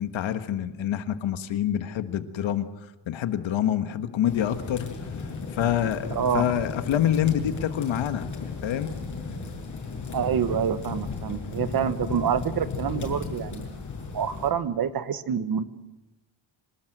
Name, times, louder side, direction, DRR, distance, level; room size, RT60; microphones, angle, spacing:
voice 1, 0.0-2.7 3.1-4.9 5.5-9.0, left 10 dB, 70° left, 9 dB, 1.6 m, -26 dB
sound 1, 4.2-14.5, left 4 dB, 40° left, 7.1 m, -35 dB
voice 2, 6.1-6.5 10.1-13.8 14.1-15.6, right 8 dB, 50° right, 12 dB, 1.3 m, -27 dB
26.0 x 19.0 x 7.9 m, 1.0 s
cardioid pair, 150°, 47 cm